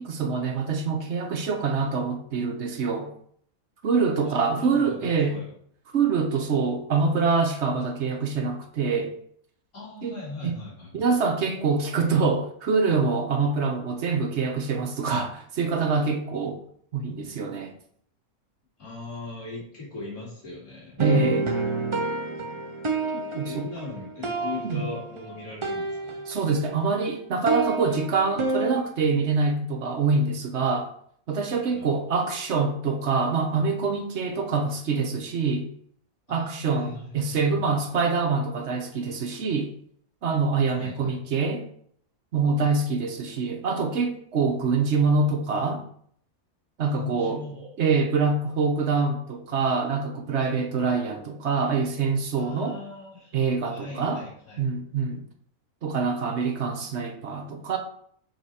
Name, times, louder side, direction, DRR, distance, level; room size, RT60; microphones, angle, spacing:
voice 1, 0.0-3.1 3.8-5.4 5.9-9.1 10.0-10.1 10.4-10.5 10.9-16.6 16.9-17.7 21.0-21.5 23.1-23.7 24.6-24.9 26.3-30.9 31.3-35.7 36.3-39.7 40.2-41.6 42.3-45.8 46.8-47.4 47.8-52.8 53.3-54.2 54.6-55.2 55.8-57.8, right 4 dB, 55° right, 4 dB, 1.0 m, -25 dB
voice 2, 4.2-5.5 9.7-11.1 18.8-21.2 23.4-26.2 31.7-31.9 36.3-37.3 37.7-37.9 40.7-41.1 46.9-47.7 52.3-53.3 53.7-54.7, left 3 dB, 75° left, -7 dB, 2.9 m, -39 dB
sound 1, 21.0-26.8 27.0-28.8, right 3 dB, 35° right, 0.5 m, -29 dB
6.6 x 4.1 x 4.2 m, 0.63 s
omnidirectional pair, 1.5 m